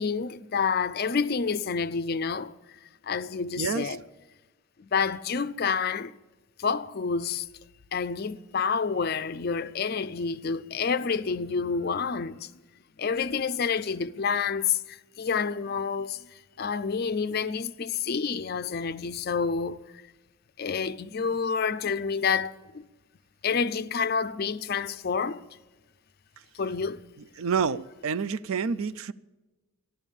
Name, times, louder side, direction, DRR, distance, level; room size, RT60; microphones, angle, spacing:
voice 1, 0.0-2.5 3.0-4.0 4.8-6.1 6.6-7.5 7.9-12.5 13.0-19.8 20.6-22.8 23.4-25.4 26.5-27.0, left 5 dB, 45° left, 0.4 m, -28 dB
voice 2, 3.6-4.0 27.4-29.1, right 6 dB, 70° right, 0.4 m, -28 dB
14.5 x 11.5 x 7.1 m
head